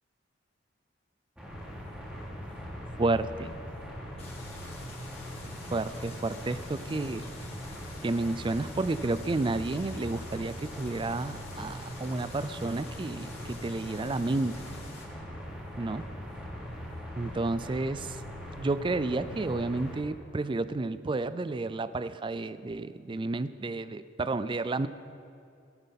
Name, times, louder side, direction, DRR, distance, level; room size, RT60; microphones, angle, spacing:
sound 1, 1.4-20.0, equal, 5° right, 2.8 m, -41 dB
voice 1, 3.0-3.6 5.7-7.2 8.0-14.5 15.8-16.0 17.2-18.2 18.6-24.9, right 2 dB, 25° right, 14 dB, 0.4 m, -31 dB
Stream, 4.2-15.1, left 3 dB, 30° left, 2.3 m, -50 dB
17.0 x 13.5 x 4.1 m, 2.5 s
head